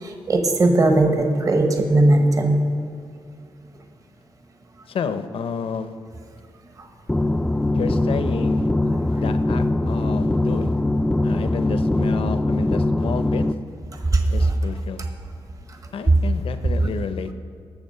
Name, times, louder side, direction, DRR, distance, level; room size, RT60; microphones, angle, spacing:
voice 1, 0.0-2.6 14.1-14.5, right 2 dB, 35° right, 4 dB, 1.1 m, -18 dB
voice 2, 4.9-5.9 7.7-8.7 9.1-10.8 11.2-13.4 14.3-15.0 15.9-17.3, left 6 dB, 70° left, 10 dB, 0.7 m, -30 dB
sound 1, 7.1-13.5, left 2 dB, 10° left, 0.4 m, -21 dB
18.5 x 7.0 x 5.6 m, 2.3 s
wide cardioid pair, 115°, 10 cm